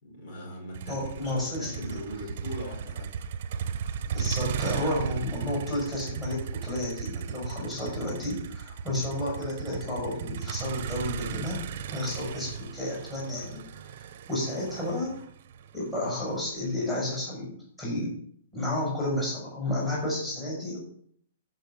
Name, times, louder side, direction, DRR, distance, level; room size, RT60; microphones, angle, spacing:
voice 1, 0.0-3.1, equal, 45° left, 0 dB, 4.6 m, -40 dB
Motor vehicle (road), 0.7-16.9, right 7 dB, 45° right, 0.9 m, -36 dB
voice 2, 0.9-2.0 4.0-11.6 11.9-13.6 14.3-15.2 15.7-18.1 18.5-20.8, left 1 dB, 5° left, -6 dB, 5.4 m, -31 dB
14.0 x 5.8 x 7.2 m, 0.63 s
hypercardioid pair, 165°, 0 cm